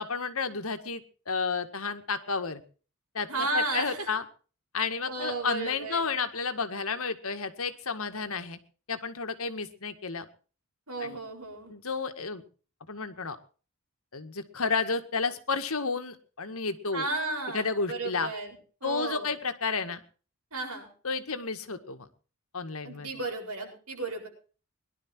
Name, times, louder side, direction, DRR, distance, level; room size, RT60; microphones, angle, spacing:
voice 1, 0.0-2.6 3.1-4.2 4.7-8.6 8.9-10.3 11.0-11.2 11.7-12.4 12.9-13.4 14.1-17.0 17.5-18.3 18.8-20.0 21.0-22.1 22.5-23.1, left 4 dB, 70° left, 8 dB, 1.9 m, -31 dB
voice 2, 3.3-4.1 5.1-6.0 10.9-11.7 16.9-19.3 20.5-20.9 22.8-24.3, right 2 dB, 80° right, 2 dB, 7.6 m, -34 dB
22.0 x 12.0 x 4.6 m, 0.39 s
head